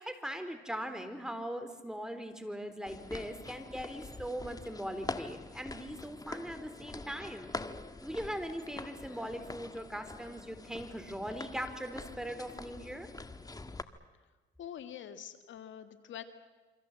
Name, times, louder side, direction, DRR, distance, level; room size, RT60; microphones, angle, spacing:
voice 1, 0.0-7.5 8.0-13.1, equal, 5° right, 8 dB, 4.2 m, -40 dB
sound 1, 2.9-13.8, left 3 dB, 20° left, 1.5 m, -45 dB
voice 2, 14.6-16.2, left 10 dB, 75° left, 9 dB, 2.0 m, -45 dB
28.5 x 25.0 x 7.6 m, 1.3 s
cardioid pair, 90°, 20 cm